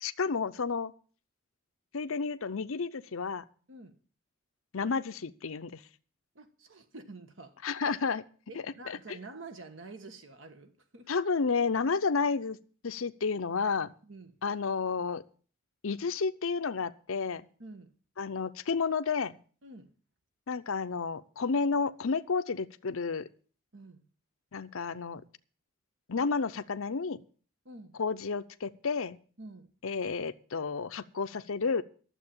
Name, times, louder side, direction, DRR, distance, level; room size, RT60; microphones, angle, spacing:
voice 1, 0.0-0.9 1.9-3.4 4.7-5.8 7.6-8.2 8.9-9.0 11.1-12.6 12.8-13.9 14.4-15.2 15.8-17.5 18.2-19.4 20.5-23.3 24.5-25.2 26.1-27.2 28.0-29.2 29.8-31.8, left 5 dB, 80° left, 12 dB, 0.7 m, -31 dB
voice 2, 6.3-7.7 8.5-11.1 14.0-14.3 17.6-17.9 19.6-19.9 23.7-24.0 27.6-27.9 29.4-29.7, right 3 dB, 70° right, 8 dB, 1.4 m, -48 dB
12.0 x 7.5 x 8.6 m, 0.41 s
head